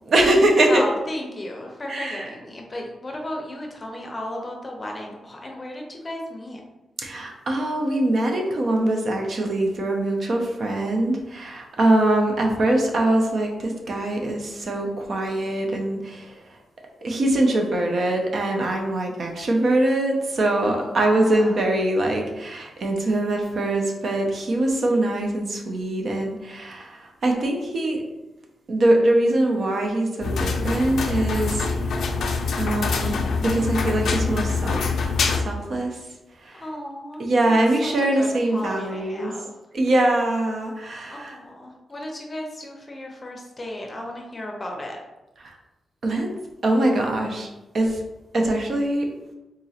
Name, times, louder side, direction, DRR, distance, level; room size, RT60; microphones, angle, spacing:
voice 1, 0.1-0.8 1.9-2.3 7.0-16.6 17.0-28.0 28.7-31.9 32.6-34.8 35.3-36.0 36.4-36.6 37.2-39.3 39.7-41.3 45.4-45.5 46.0-46.3 46.6-47.5 47.7-48.0 48.3-49.1, right 1 dB, 55° right, 2 dB, 0.6 m, -23 dB
voice 2, 0.7-6.6 20.6-20.8 21.3-21.6 36.5-37.5 37.8-39.6 41.1-45.0, left 1 dB, 25° left, 0 dB, 0.6 m, -35 dB
sound 1, 30.2-35.4, left 4 dB, 75° left, 0.4 m, -24 dB
3.7 x 3.0 x 2.8 m, 1.0 s
wide cardioid pair, 130°, 0 cm